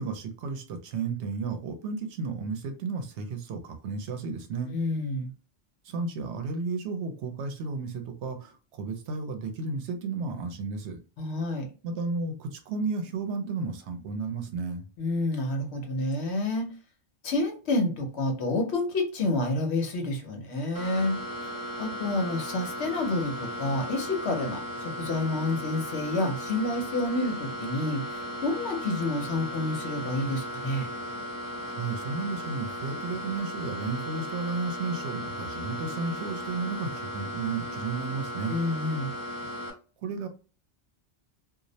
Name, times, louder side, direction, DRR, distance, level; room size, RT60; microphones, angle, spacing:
voice 1, 0.0-4.7 5.8-11.0 11.8-14.9 31.6-38.5 40.0-40.3, right 4 dB, 85° right, 0.9 m, -33 dB
voice 2, 4.7-5.3 11.2-11.7 15.0-16.7 17.2-21.1 21.8-30.9 38.5-39.1, left 2 dB, 75° left, 1.0 m, -29 dB
sound 1, 20.7-39.7, equal, 25° right, 0.6 m, -36 dB
2.4 x 2.0 x 2.6 m
omnidirectional pair, 1.1 m